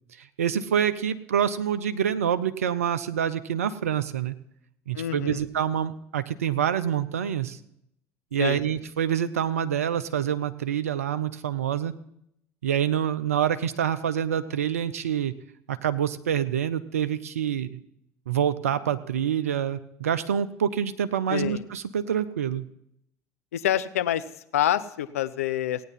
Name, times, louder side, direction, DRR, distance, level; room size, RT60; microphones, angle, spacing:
voice 1, 0.2-4.3 4.9-7.6 8.3-11.9 12.6-15.3 15.7-17.8 18.3-22.6, right 9 dB, 90° right, 12 dB, 0.5 m, -26 dB
voice 2, 4.9-5.4 8.4-8.6 21.3-21.6 23.5-24.2 24.5-25.8, left 11 dB, 85° left, 13 dB, 0.6 m, -26 dB
17.0 x 9.3 x 5.6 m, 0.75 s
hypercardioid pair, 65°, 8 cm